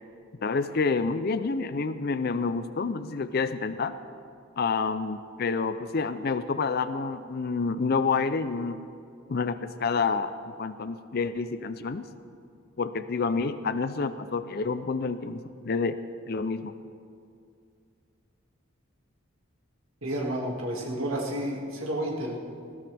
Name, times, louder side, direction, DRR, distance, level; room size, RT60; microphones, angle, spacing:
voice 1, 0.4-3.9 4.6-8.8 9.3-12.1 12.8-16.0 16.3-16.7, left 4 dB, 45° left, 11 dB, 0.5 m, -28 dB
voice 2, 20.0-22.4, right 1 dB, 70° right, -2 dB, 2.2 m, -31 dB
20.5 x 17.0 x 3.4 m, 2.4 s
head